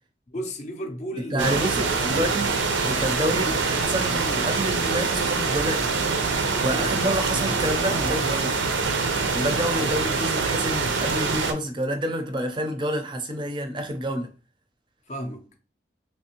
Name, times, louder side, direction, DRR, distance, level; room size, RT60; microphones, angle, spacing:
voice 1, 0.3-2.4 6.5-6.9 9.5-9.9 15.1-15.5, equal, 35° left, 0.5 m, -35 dB
voice 2, 1.2-2.5 2.8-5.9 6.6-8.6 9.3-14.3, equal, 25° right, 0.5 m, -28 dB
sound 1, 1.4-11.5, right 4 dB, 85° right, 0.6 m, -25 dB
3.4 x 3.1 x 2.9 m
head